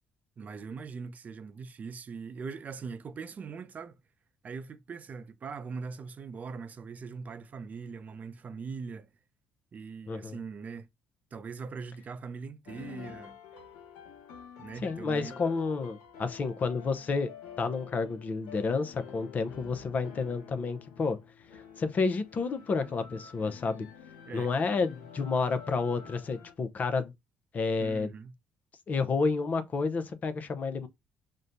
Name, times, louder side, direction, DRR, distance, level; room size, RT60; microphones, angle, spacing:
voice 1, 0.4-4.0 4.4-9.1 9.7-10.9 11.3-13.4 14.6-15.4 24.3-24.5 27.8-28.3, right 5 dB, 45° right, 0.5 m, -41 dB
voice 2, 10.1-10.4 14.8-17.3 17.6-21.2 21.8-23.9 24.3-27.1 27.5-28.1 28.9-30.9, left 4 dB, 45° left, 0.7 m, -30 dB
sound 1, 12.7-26.5, left 7 dB, 85° left, 1.0 m, -49 dB
6.2 x 2.2 x 2.6 m
supercardioid pair, 65°, 4 cm